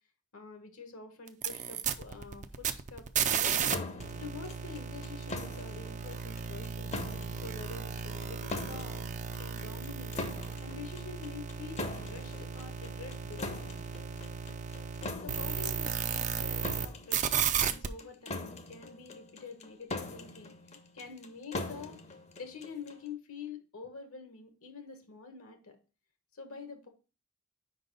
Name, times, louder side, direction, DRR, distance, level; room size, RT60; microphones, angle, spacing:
voice 1, 0.3-6.9 7.4-9.1 9.4-10.3 10.6-13.5 15.2-20.5 20.9-22.0 22.4-25.8 26.3-26.9, left 5 dB, 70° left, 6 dB, 1.2 m, -47 dB
sound 1, 1.3-3.7 4.0-16.9 17.1-17.9, right 7 dB, 35° right, 0.4 m, -35 dB
sound 2, 3.7-23.1, left 2 dB, 30° left, 0.7 m, -42 dB
5.1 x 4.0 x 5.2 m, 0.33 s
head